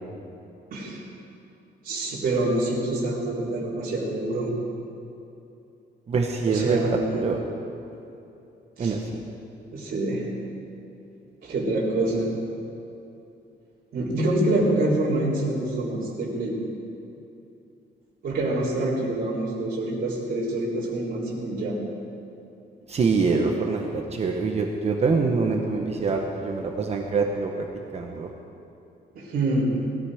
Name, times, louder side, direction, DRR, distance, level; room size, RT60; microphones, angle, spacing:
voice 1, 0.7-1.1 1.8-4.5 6.4-7.2 8.8-9.0 9.7-10.2 11.4-12.3 13.9-16.6 18.2-21.8 29.1-29.7, right 2 dB, 50° right, -7 dB, 3.6 m, -26 dB
voice 2, 6.1-7.4 8.8-9.0 22.9-27.5 27.9-28.3, right 4 dB, 35° right, 2 dB, 1.0 m, -25 dB
19.5 x 13.5 x 4.9 m, 2.8 s
cardioid pair, 175°, 18 cm